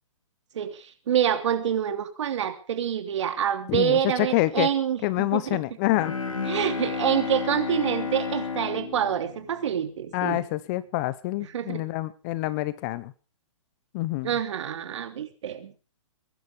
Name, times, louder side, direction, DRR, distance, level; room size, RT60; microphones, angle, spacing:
voice 1, 0.5-5.6 6.5-10.4 11.5-11.8 14.2-15.7, right 9 dB, 60° right, 9 dB, 3.0 m, -27 dB
voice 2, 3.7-4.7 5.0-6.1 10.1-13.1 13.9-14.3, left 18 dB, 35° left, 18 dB, 1.1 m, -27 dB
Bowed string instrument, 5.9-10.2, left 5 dB, 90° left, 3.0 m, -32 dB
22.0 x 11.5 x 4.9 m, 0.37 s
hypercardioid pair, 140°, 17 cm